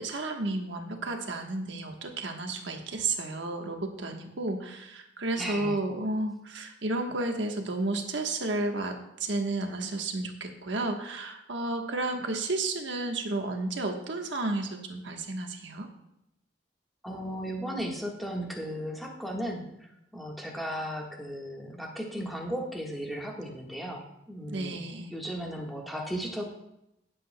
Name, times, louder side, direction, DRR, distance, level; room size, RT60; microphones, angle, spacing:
voice 1, 0.0-15.9 24.5-25.1, right 2 dB, 90° right, 3 dB, 1.2 m, -32 dB
voice 2, 5.4-5.8 17.0-19.7 20.1-24.7 25.1-26.4, equal, ahead, -1 dB, 1.5 m, -35 dB
17.0 x 7.6 x 2.2 m, 0.83 s
head